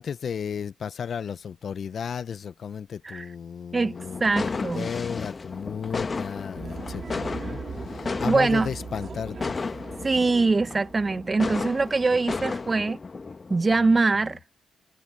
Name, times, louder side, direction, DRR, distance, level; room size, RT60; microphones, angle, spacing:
voice 1, 0.0-9.6 13.8-14.3, left 7 dB, 60° left, 1.0 m, -34 dB
voice 2, 3.7-4.9 8.2-8.7 10.0-13.0 13.5-14.4, right 3 dB, 30° right, 1.3 m, -23 dB
sound 1, 4.0-13.8, left 4 dB, 40° left, 1.5 m, -34 dB
sound 2, 6.6-12.1, right 6 dB, 55° right, 5.8 m, -41 dB
supercardioid pair, 55°, 0 cm